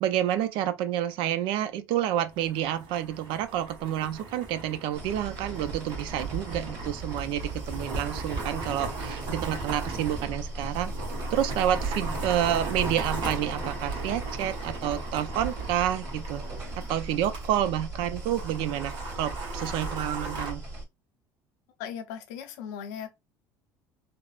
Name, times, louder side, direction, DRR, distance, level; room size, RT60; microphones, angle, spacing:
voice 1, 0.0-10.9 11.3-16.4 16.9-20.6, right 11 dB, 70° right, 0.5 m, -29 dB
sound 1, 2.3-17.5 17.7-17.8 18.2-20.5, right 2 dB, 55° right, 1.1 m, -37 dB
sound 2, 4.9-20.8, right 2 dB, 35° right, 1.8 m, -38 dB
voice 2, 21.8-23.1, left 8 dB, 90° left, 0.6 m, -37 dB
3.4 x 2.0 x 2.3 m
supercardioid pair, 110°, 9 cm